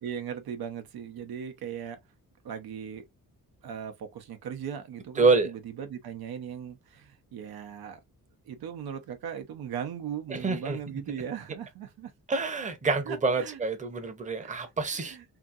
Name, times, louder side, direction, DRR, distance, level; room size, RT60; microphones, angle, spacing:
voice 1, 0.0-2.0 2.4-3.1 3.6-8.0 8.5-12.1 13.1-13.6 14.4-14.5 14.9-15.2, right 8 dB, 85° right, 0.7 m, -38 dB
voice 2, 5.2-5.5 10.3-10.8 12.3-15.2, right 3 dB, 20° right, 0.7 m, -26 dB
2.8 x 2.6 x 2.4 m
cardioid pair, 100°, 36 cm